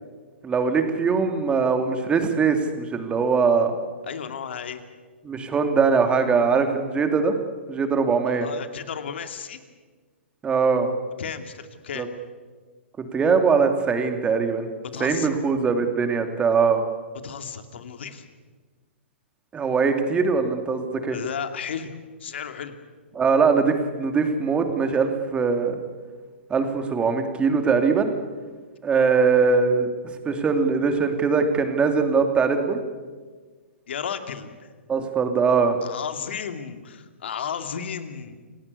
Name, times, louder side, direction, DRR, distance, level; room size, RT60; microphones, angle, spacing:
voice 1, 0.4-3.7 5.2-7.3 7.7-8.5 10.4-10.9 11.9-12.1 13.0-14.7 15.0-16.8 19.5-21.2 23.1-25.8 26.5-28.1 28.8-29.9 30.2-32.8 34.9-35.8, right 5 dB, 15° right, 6 dB, 2.8 m, -21 dB
voice 2, 4.0-4.8 8.3-9.6 11.2-12.1 14.9-15.3 17.2-18.2 21.1-22.8 33.9-34.7 35.8-38.4, left 7 dB, 65° left, 8 dB, 2.6 m, -33 dB
29.0 x 18.0 x 8.4 m, 1.5 s
hypercardioid pair, 120°, 7 cm